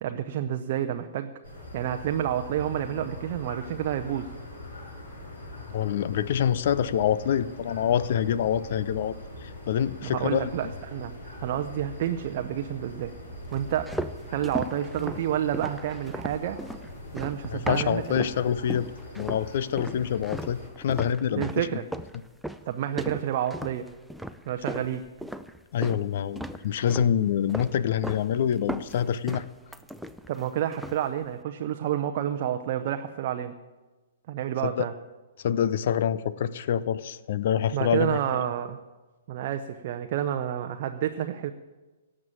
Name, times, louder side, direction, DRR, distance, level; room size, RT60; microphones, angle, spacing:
voice 1, 0.0-1.3 1.7-4.3 10.0-13.1 13.5-13.9 14.3-16.6 17.1-18.3 21.3-21.8 22.7-23.9 24.5-25.0 30.3-33.5 34.3-34.9 37.7-38.8 39.3-41.5, right 10 dB, 40° right, 6 dB, 0.7 m, -29 dB
sound 1, 1.4-20.7, left 1 dB, 75° left, 6.9 m, -42 dB
voice 2, 5.7-9.1 9.4-10.7 17.5-18.9 19.2-21.7 25.7-29.5 34.6-34.9 35.4-38.2, left 9 dB, 50° left, 17 dB, 0.6 m, -26 dB
sound 2, 13.5-18.4 18.7-19.5 19.8-26.0 26.3-27.2 27.5-28.3 28.5-30.4 30.7-31.1, equal, ahead, 0.5 m, -36 dB
18.0 x 7.5 x 8.7 m, 1.2 s
figure-of-eight pair, 115°, 0 cm